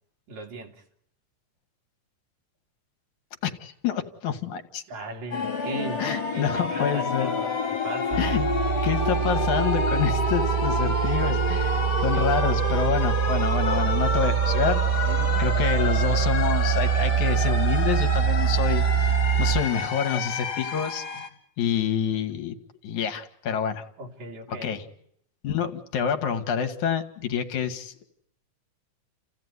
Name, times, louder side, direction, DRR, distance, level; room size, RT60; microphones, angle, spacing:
voice 1, 0.3-0.8 4.9-6.0 6.3-8.3 12.1-12.3 15.1-15.5 21.1-21.2 24.0-24.9, right 2 dB, 65° right, 2 dB, 4.1 m, -37 dB
voice 2, 3.4-4.8 6.0-7.3 8.2-8.5 8.8-15.0 15.4-19.1 19.4-21.1 21.6-22.6 22.8-23.8 24.6-24.8 25.4-28.0, left 8 dB, 70° left, 6 dB, 3.1 m, -27 dB
sound 1, 5.3-21.3, left 3 dB, 55° left, 3.5 m, -29 dB
sound 2, 8.1-19.6, right 8 dB, 25° right, 0.9 m, -24 dB
29.5 x 16.0 x 9.6 m, 0.71 s
omnidirectional pair, 3.6 m